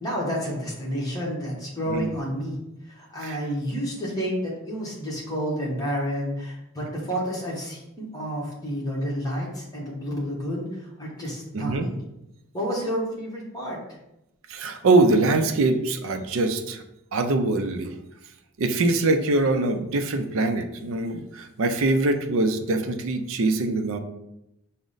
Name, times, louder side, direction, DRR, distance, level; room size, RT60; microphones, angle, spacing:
voice 1, 0.0-2.5 2.8-12.0 12.5-14.0, equal, 15° left, -4 dB, 1.0 m, -30 dB
voice 2, 11.5-11.9 14.5-16.8 17.1-17.9 18.6-24.0, right 2 dB, 60° right, 7 dB, 0.4 m, -23 dB
4.8 x 2.1 x 3.9 m, 0.87 s
head